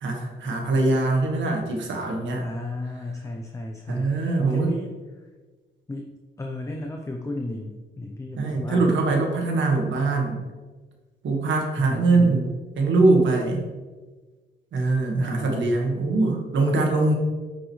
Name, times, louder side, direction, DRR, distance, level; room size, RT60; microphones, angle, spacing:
voice 1, 0.0-2.4 3.9-4.7 8.4-10.4 11.2-12.5 12.8-13.7 14.7-17.1, right 3 dB, 80° right, 2 dB, 1.7 m, -22 dB
voice 2, 2.4-4.9 5.9-9.0 11.8-12.5 15.2-15.9 16.7-16.8, left 1 dB, 15° left, 2 dB, 0.6 m, -34 dB
10.0 x 6.2 x 3.2 m, 1.3 s
cardioid pair, 130°, 19 cm